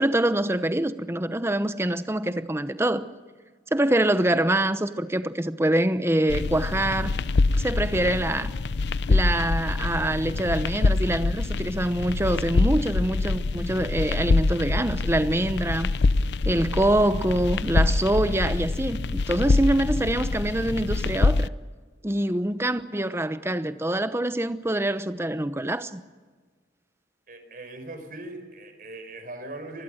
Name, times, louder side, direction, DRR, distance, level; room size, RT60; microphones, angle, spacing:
voice 1, 0.0-3.1 3.7-7.2 7.5-8.5 9.1-15.9 16.4-21.5 22.0-26.0, right 1 dB, 15° right, 0.9 m, -25 dB
sound 1, 6.3-21.5, left 3 dB, 75° left, 0.6 m, -25 dB
voice 2, 27.3-29.8, right 2 dB, 50° right, 4.7 m, -40 dB
25.5 x 20.5 x 6.5 m
head